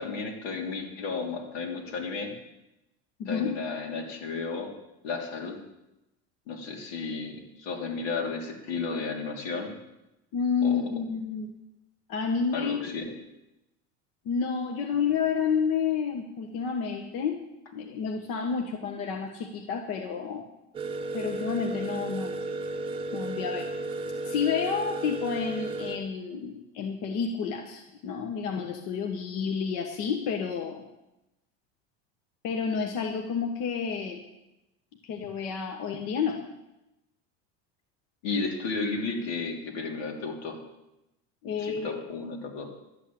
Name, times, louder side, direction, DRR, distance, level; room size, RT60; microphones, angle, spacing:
voice 1, 0.0-2.3 3.3-4.7 5.0-5.5 6.5-9.7 10.6-10.7 12.5-13.0 38.2-40.6 41.6-42.7, left 4 dB, 80° left, 1 dB, 3.3 m, -33 dB
voice 2, 3.2-3.6 10.3-11.5 12.1-13.0 14.2-17.4 17.7-20.4 21.1-22.3 23.1-23.9 24.3-30.8 32.4-34.2 35.0-36.4 41.4-42.0, left 6 dB, 50° left, 4 dB, 1.2 m, -30 dB
sound 1, 20.7-26.0, right 2 dB, 15° right, 0.8 m, -34 dB
12.5 x 8.2 x 8.6 m, 0.93 s
cardioid pair, 175°, 31 cm